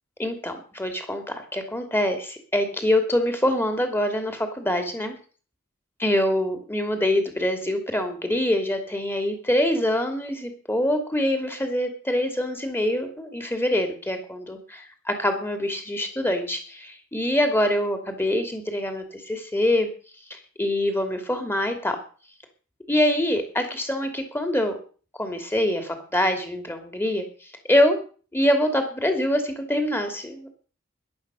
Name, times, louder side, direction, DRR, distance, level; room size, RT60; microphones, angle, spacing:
voice 1, 0.2-5.2 6.0-19.9 20.3-22.0 22.9-24.7 25.2-27.2 27.7-28.0 28.3-30.6, left 1 dB, 10° left, 6 dB, 2.8 m, -25 dB
14.5 x 11.5 x 6.3 m, 0.40 s
head